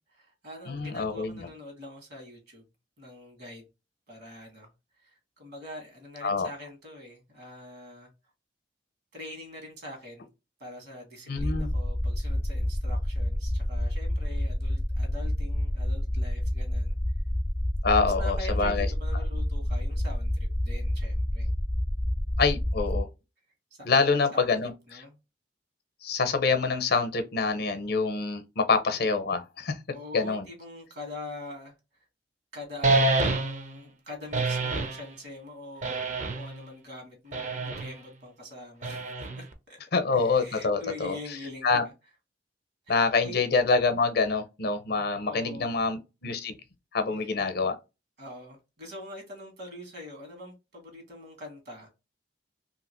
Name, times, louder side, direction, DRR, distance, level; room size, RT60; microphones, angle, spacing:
voice 1, 0.1-2.7 3.0-3.7 4.1-4.7 5.0-8.1 9.1-10.3 10.6-17.0 18.0-21.5 23.8-24.5 24.9-25.2 29.9-31.7 32.5-39.8 40.1-41.9 42.9-43.4 45.2-45.8 48.2-51.9, left 1 dB, 65° right, 1.5 m, -44 dB
voice 2, 0.7-1.5 6.2-6.5 11.3-11.7 17.8-18.9 22.4-23.1 23.8-25.0 26.0-29.8 30.1-30.4 39.9-41.2 41.6-41.8 42.9-46.5 46.9-47.8, left 4 dB, 60° left, 0.6 m, -26 dB
sound 1, 11.4-23.0, left 1 dB, 5° left, 0.3 m, -28 dB
sound 2, 32.8-33.7 34.3-35.0 35.8-36.6 37.3-37.9 38.8-39.5, right 2 dB, 45° right, 0.5 m, -27 dB
2.8 x 2.8 x 2.9 m
head